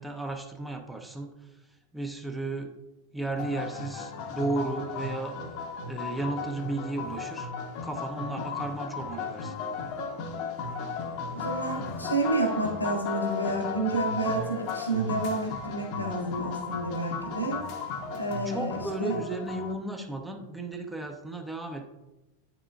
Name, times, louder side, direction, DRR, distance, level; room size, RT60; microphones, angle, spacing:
voice 1, 0.0-1.3 1.9-2.7 3.1-5.3 5.9-7.5 7.8-9.5 18.4-21.8, right 2 dB, 5° right, 4 dB, 0.7 m, -34 dB
sound 1, 3.4-19.7, left 4 dB, 45° left, 0.8 m, -35 dB
voice 2, 11.3-17.6 18.1-19.2, right 2 dB, 85° left, 1 dB, 1.5 m, -30 dB
9.5 x 5.9 x 2.3 m, 1.0 s
figure-of-eight pair, 90°, 0 cm